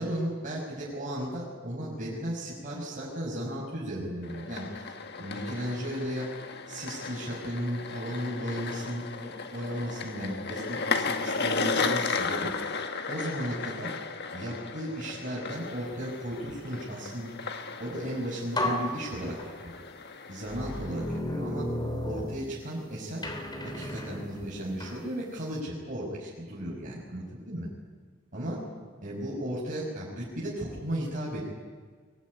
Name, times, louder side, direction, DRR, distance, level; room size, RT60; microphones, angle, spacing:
voice 1, 0.0-4.9 5.2-6.3 6.7-13.9 14.3-17.3 17.8-19.7 20.3-21.7 22.0-23.2 23.6-27.7 28.3-28.6 29.0-31.4, equal, 40° right, -5 dB, 6.2 m, -35 dB
sound 1, 4.2-21.2, left 4 dB, 55° left, 1.6 m, -35 dB
sound 2, 18.0-18.1 18.5-19.8 20.5-22.8 23.2-25.0, left 1 dB, 20° left, 3.2 m, -34 dB
23.5 x 19.5 x 9.9 m, 1.5 s
head